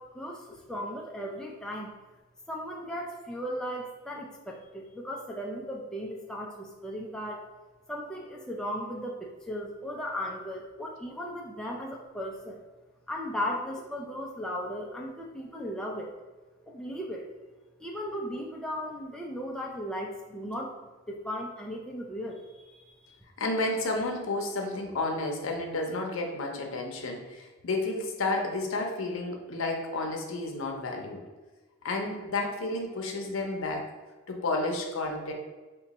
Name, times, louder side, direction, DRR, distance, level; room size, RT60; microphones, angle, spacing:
voice 1, 0.0-1.9 2.5-7.4 7.9-12.6 13.1-16.1 16.7-17.3 17.8-20.8 21.1-23.2, equal, 5° left, -2 dB, 0.3 m, -36 dB
voice 2, 23.4-31.2 31.8-33.9 34.3-35.3, left 2 dB, 70° left, 2 dB, 0.6 m, -31 dB
3.8 x 2.2 x 4.0 m, 1.2 s
head